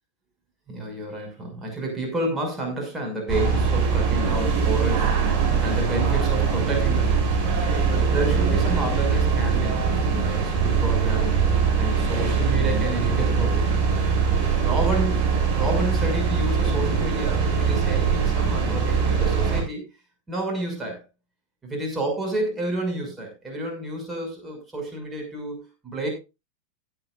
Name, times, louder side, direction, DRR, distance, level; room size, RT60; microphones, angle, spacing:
voice 1, 0.7-7.2 7.9-11.5 11.8-19.8 20.3-21.0 21.6-26.1, right 1 dB, 10° right, 1 dB, 6.2 m, -30 dB
sound 1, 3.3-19.6, right 5 dB, 35° right, 6.5 m, -22 dB
16.5 x 9.9 x 2.5 m, 0.27 s
figure-of-eight pair, 90°, 0 cm